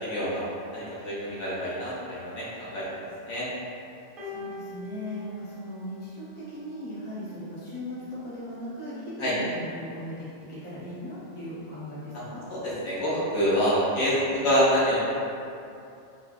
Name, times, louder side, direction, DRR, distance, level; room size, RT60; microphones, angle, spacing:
voice 1, 0.0-0.4 0.7-3.5 9.2-9.3 12.5-15.0, equal, 65° left, -8 dB, 0.9 m, -26 dB
voice 2, 4.2-12.4, equal, 15° left, -10 dB, 0.5 m, -38 dB
sound 1, 4.2-6.6 7.7-7.8, left 4 dB, 60° right, 0.6 m, -43 dB
3.3 x 2.2 x 2.4 m, 2.6 s
omnidirectional pair, 1.3 m